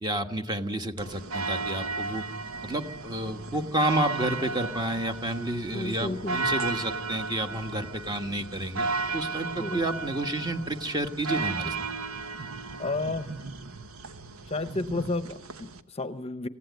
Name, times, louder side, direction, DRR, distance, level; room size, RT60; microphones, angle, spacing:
voice 1, 0.0-2.2 2.6-8.9 9.1-11.8, right 1 dB, 20° right, 6 dB, 1.4 m, -30 dB
sound 1, 1.0-15.8, right 3 dB, 85° right, 1.1 m, -34 dB
voice 2, 5.7-6.4 9.6-9.8 12.8-13.3 14.5-16.5, left 2 dB, 30° left, 11 dB, 0.8 m, -32 dB
26.5 x 16.0 x 9.3 m, 0.89 s
head